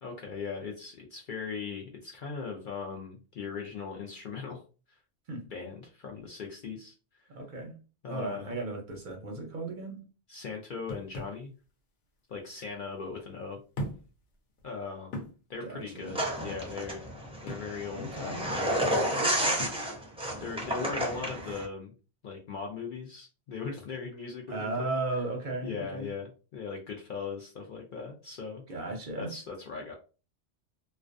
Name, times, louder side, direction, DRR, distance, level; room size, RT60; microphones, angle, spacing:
voice 1, 0.0-4.6 4.9-5.0 5.5-7.3 8.0-8.6 10.3-11.5 12.3-13.6 14.6-15.1 15.5-17.0 17.4-19.3 20.3-21.9 22.2-24.9 25.6-28.6 29.2-29.9, left 5 dB, 60° left, 0 dB, 0.6 m, -39 dB
voice 2, 7.3-7.7 8.1-10.0 15.6-16.2 17.9-18.4 19.4-19.6 24.5-26.1 28.7-29.3, right 2 dB, 55° right, 1 dB, 0.6 m, -36 dB
sound 1, 10.9-11.4 12.5-12.6 13.7-14.2 14.6-14.7 15.1-15.4 17.5-17.7 19.6-19.9, equal, 80° left, 1.0 m, -38 dB
sound 2, 16.1-21.6, right 1 dB, 10° right, 0.3 m, -31 dB
2.3 x 2.2 x 2.4 m, 0.34 s
omnidirectional pair, 1.2 m